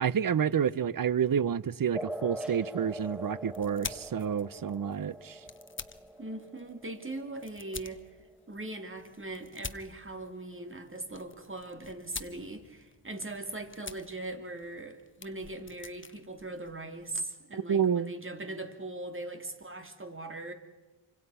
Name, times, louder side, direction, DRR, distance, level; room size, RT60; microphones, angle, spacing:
voice 1, 0.0-5.4 17.7-18.1, right 8 dB, 50° right, 0.7 m, -29 dB
sound 1, 1.9-9.0, equal, ahead, 1.3 m, -43 dB
sound 2, 2.7-17.3, left 4 dB, 25° left, 1.0 m, -48 dB
voice 2, 6.2-8.0 8.5-20.5, right 2 dB, 25° right, 2.6 m, -40 dB
28.0 x 25.5 x 5.6 m
wide cardioid pair, 95°, 45 cm